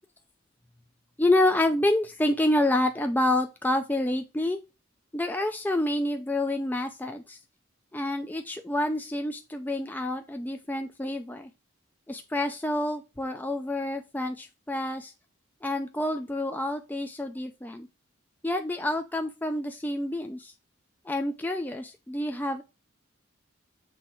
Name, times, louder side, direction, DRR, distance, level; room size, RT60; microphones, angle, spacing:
voice 1, 1.2-4.6 5.1-7.4 7.9-11.5 12.1-15.1 15.6-17.9 18.4-20.5 21.1-22.6, left 1 dB, 10° left, 5 dB, 0.5 m, -28 dB
6.2 x 3.4 x 4.5 m, 0.26 s
head